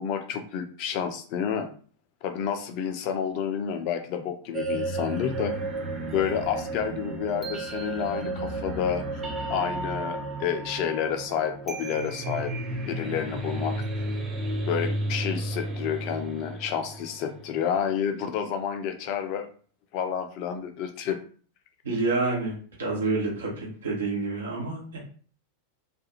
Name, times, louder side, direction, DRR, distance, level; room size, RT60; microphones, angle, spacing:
voice 1, 0.0-1.7 2.2-5.5 6.1-9.2 9.5-12.5 12.9-13.8 14.7-19.5 19.9-21.2, left 8 dB, 45° left, 6 dB, 0.5 m, -29 dB
sound 1, 4.5-17.5, right 2 dB, 20° right, 0.6 m, -33 dB
voice 2, 21.8-22.5 22.8-25.0, right 3 dB, 65° right, -2 dB, 1.0 m, -28 dB
2.4 x 2.3 x 2.8 m, 0.43 s
figure-of-eight pair, 90°, 0 cm